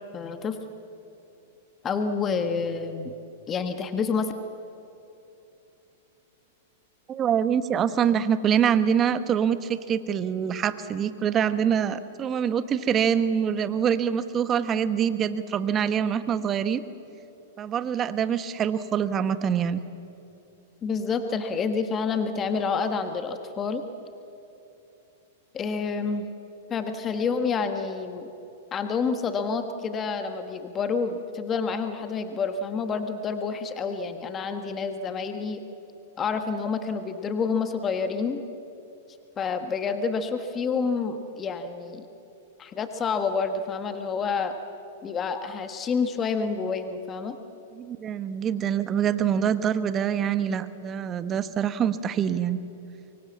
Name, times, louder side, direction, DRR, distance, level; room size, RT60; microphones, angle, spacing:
voice 1, 0.1-0.6 1.8-3.1 3.5-4.3 20.8-23.8 25.5-26.3 26.7-28.3 28.7-35.6 36.2-38.4 39.4-42.0 42.6-44.5 45.0-47.4, left 5 dB, 25° left, 7 dB, 1.5 m, -28 dB
voice 2, 7.1-16.8 17.6-19.8 47.7-52.6, right 8 dB, 30° right, 12 dB, 1.3 m, -25 dB
24.5 x 24.0 x 7.4 m, 2.8 s
hypercardioid pair, 115°, 0 cm